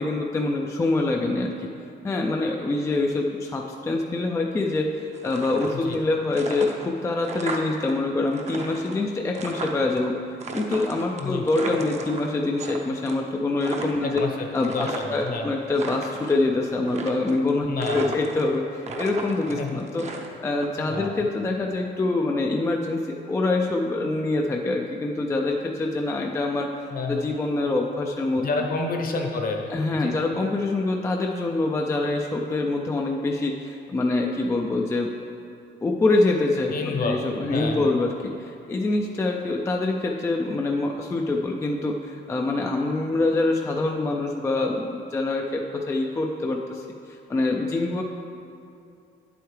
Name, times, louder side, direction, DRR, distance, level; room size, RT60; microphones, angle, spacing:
voice 1, 0.0-1.7 2.0-14.2 14.5-28.4 29.7-35.1 35.8-36.7 37.0-48.0, left 2 dB, 15° left, 1 dB, 0.3 m, -25 dB
sound 1, 5.1-6.0 6.3-7.9 8.2-10.0 10.4-12.8 13.1-13.3 13.6-15.3 15.6-16.4 16.9-17.5 17.8-18.6 18.8-20.7, right 3 dB, 35° right, 0.7 m, -35 dB
voice 2, 15.2-15.5 17.7-18.1 19.5-19.8 20.9-21.1 26.9-27.2 28.4-29.6 30.0-30.1 36.7-37.2 37.5-37.9, left 3 dB, 50° left, 2 dB, 1.0 m, -28 dB
9.4 x 7.9 x 3.2 m, 2.6 s
cardioid pair, 155°, 19 cm